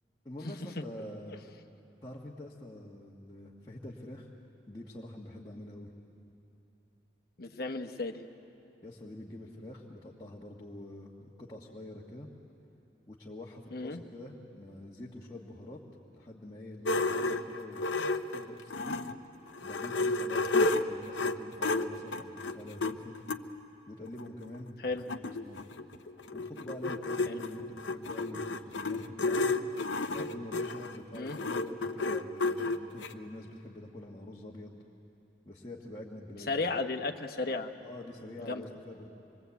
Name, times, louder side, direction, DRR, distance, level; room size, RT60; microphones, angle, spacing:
voice 1, 0.2-1.5 2.0-4.3 4.7-5.9 8.8-12.3 13.1-15.8 16.1-19.0 19.6-23.2 23.9-25.6 26.3-29.5 30.1-34.7 35.4-36.8 37.8-39.1, left 1 dB, 20° left, -5 dB, 1.5 m, -46 dB
voice 2, 7.4-8.2 13.7-14.0 20.5-20.7 24.8-25.0 27.2-27.4 31.1-31.4 36.5-37.7 38.4-38.7, left 3 dB, 55° left, 5 dB, 1.1 m, -34 dB
sound 1, 16.8-19.2 19.6-23.4 24.2-24.3 24.6-24.7 24.8-33.1, left 3 dB, 80° left, 0.8 m, -31 dB
26.0 x 22.0 x 8.3 m, 2.9 s
head